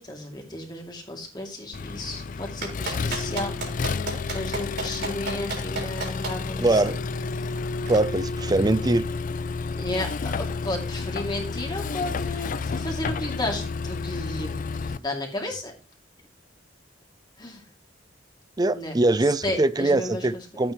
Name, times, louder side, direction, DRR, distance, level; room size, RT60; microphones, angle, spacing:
voice 1, 0.0-3.5 4.3-6.9 9.8-14.5 14.8-15.7 17.4-17.6 18.7-18.9 19.4-20.2, left 1 dB, 20° left, 2.6 m, -33 dB
Accelerating revving vroom, 1.7-15.0, left 4 dB, 40° left, 0.4 m, -31 dB
Clapping, 2.6-6.3 7.9-8.0, right 3 dB, 60° right, 4.3 m, -31 dB
voice 2, 6.6-7.0 7.9-9.1 18.6-20.7, right 2 dB, 20° right, 0.5 m, -22 dB
12.5 x 8.9 x 3.1 m
head